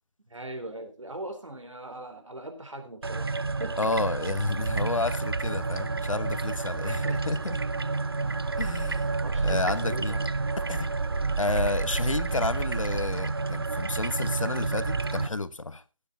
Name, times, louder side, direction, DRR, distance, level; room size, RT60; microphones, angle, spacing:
voice 1, 0.3-3.9 6.8-7.3 8.6-8.8 9.2-10.3, right 1 dB, 70° right, 3.7 m, -40 dB
sound 1, 3.0-15.3, right 3 dB, 50° right, 0.5 m, -29 dB
voice 2, 3.8-7.6 8.6-9.1 9.4-10.1 10.7-10.9 11.4-15.8, left 2 dB, 75° left, 1.2 m, -30 dB
16.5 x 8.0 x 4.0 m
figure-of-eight pair, 170°, 17 cm